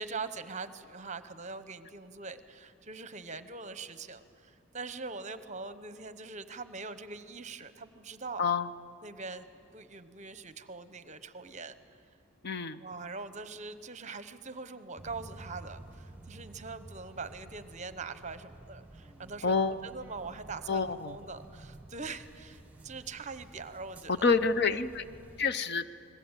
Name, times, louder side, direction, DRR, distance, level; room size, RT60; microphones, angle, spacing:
voice 1, 0.0-8.5 9.0-9.5 9.7-11.8 12.8-24.3 24.7-24.8, right 4 dB, 30° right, 12 dB, 0.9 m, -42 dB
voice 2, 12.4-12.8 19.4-19.8 20.7-21.2 24.1-25.0 25.4-25.8, left 4 dB, 45° left, 12 dB, 0.7 m, -28 dB
sound 1, 15.0-25.5, right 2 dB, 5° right, 1.0 m, -51 dB
29.5 x 21.0 x 9.0 m, 2.5 s
head